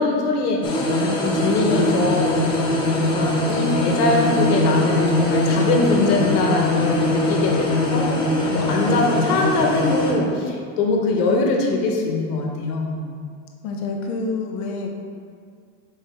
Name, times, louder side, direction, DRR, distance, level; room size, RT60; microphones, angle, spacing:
voice 1, 0.0-2.4 2.6-2.7 3.0-8.2 8.5-13.0, left 3 dB, 75° left, 0 dB, 1.3 m, -22 dB
sound 1, 0.6-10.1, left 1 dB, 15° left, 0.3 m, -21 dB
voice 2, 13.6-14.9, left 3 dB, 35° left, 2 dB, 0.7 m, -27 dB
6.0 x 5.1 x 3.7 m, 2.1 s
supercardioid pair, 150°, 47 cm